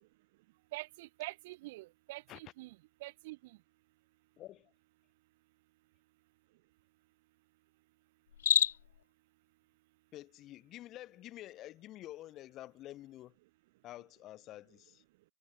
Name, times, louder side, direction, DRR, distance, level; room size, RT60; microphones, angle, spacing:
voice 1, 0.7-2.7 3.0-3.6, right 20 dB, 60° right, 3.6 m, -45 dB
voice 2, 4.4-4.7 10.1-13.3 13.8-15.0, left 14 dB, 35° left, 7.5 m, -49 dB
Cricket, 8.3-9.0, left 9 dB, 85° left, 1.1 m, -29 dB
hypercardioid pair, 125°, 0 cm